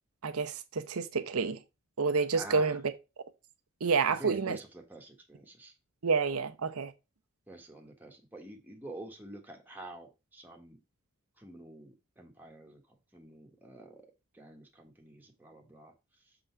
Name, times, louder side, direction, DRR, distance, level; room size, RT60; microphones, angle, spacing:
voice 1, 0.2-1.6 2.0-2.8 3.8-4.6 6.0-6.9, right 5 dB, 80° right, 0.8 m, -29 dB
voice 2, 2.3-2.8 4.1-5.7 7.5-10.8 11.4-12.8 13.1-14.0 14.3-15.9, right 1 dB, 10° right, 1.3 m, -47 dB
6.9 x 3.9 x 4.4 m
head